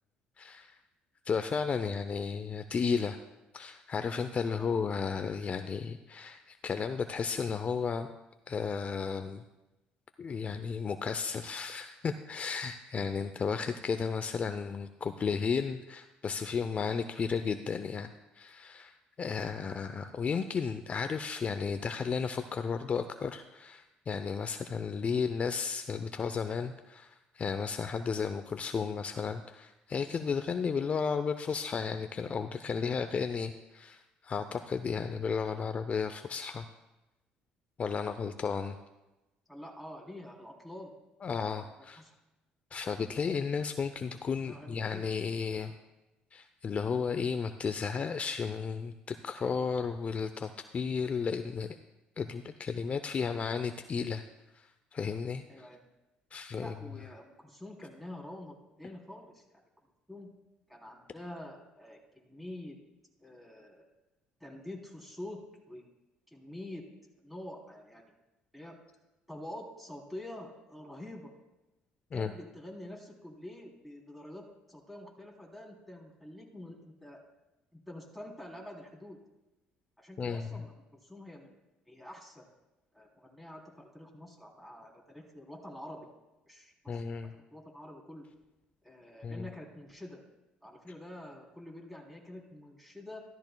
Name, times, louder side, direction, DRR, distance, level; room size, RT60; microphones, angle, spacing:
voice 1, 0.4-0.7 1.3-3.2 3.5-8.1 8.5-9.4 10.2-18.1 18.4-36.7 37.8-38.8 41.2-42.0 42.7-45.7 46.3-51.7 52.2-54.2 54.5-55.4 56.3-56.7 72.1-72.3 80.2-80.6 86.9-87.3 89.2-89.4, left 5 dB, 40° left, 9 dB, 0.6 m, -33 dB
voice 2, 4.4-4.8 39.5-40.9 41.5-41.7 42.0-42.1 44.4-45.1 45.7-45.8 55.5-55.8 56.6-59.6 60.1-60.3 60.7-62.8 63.2-63.8 64.4-65.4 65.7-65.8 66.3-66.8 67.2-68.0 68.5-68.7 69.3-71.3 72.1-77.2 77.7-79.2 80.0-81.6 81.9-82.4 82.9-86.1 86.5-87.0 87.5-88.3 88.8-90.2 90.6-93.2, left 1 dB, ahead, -1 dB, 3.4 m, -47 dB
14.0 x 13.5 x 2.3 m, 1.0 s
supercardioid pair, 70°, 4 cm